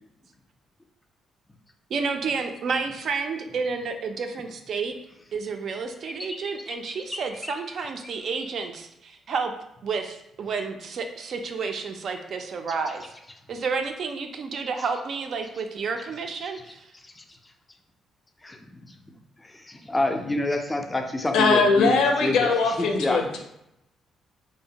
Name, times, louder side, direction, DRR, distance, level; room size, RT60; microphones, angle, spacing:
voice 1, 1.9-4.9 5.3-9.5 9.8-13.0 13.5-16.8, right 5 dB, 60° right, 5 dB, 0.3 m, -30 dB
voice 2, 18.4-18.8 19.4-23.2, left 1 dB, 15° left, 4 dB, 0.4 m, -28 dB
voice 3, 21.3-23.4, left 4 dB, 85° left, 2 dB, 0.4 m, -21 dB
2.6 x 2.0 x 2.8 m, 0.82 s
cardioid pair, 90°, 0 cm